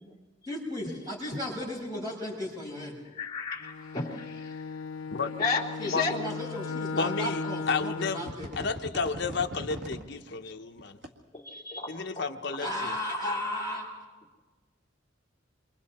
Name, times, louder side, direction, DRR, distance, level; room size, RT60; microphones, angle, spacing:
voice 1, 0.5-3.0 5.8-8.5 12.6-13.9, left 1 dB, 20° right, -3 dB, 6.3 m, -35 dB
voice 2, 3.2-4.5 5.4-6.1 11.4-12.0 13.2-13.3, left 4 dB, 20° left, -3 dB, 2.9 m, -32 dB
Bowed string instrument, 3.6-8.4, left 4 dB, 90° left, 0.6 m, -36 dB
sound 1, 6.2-6.3 7.3-7.4 7.8-8.0 8.3-10.0 10.8-11.1, equal, 60° right, 2.1 m, -39 dB
voice 3, 7.0-8.2 8.6-11.0 11.9-12.9, left 4 dB, 60° left, 5 dB, 1.0 m, -32 dB
29.0 x 24.5 x 4.3 m, 1.3 s
head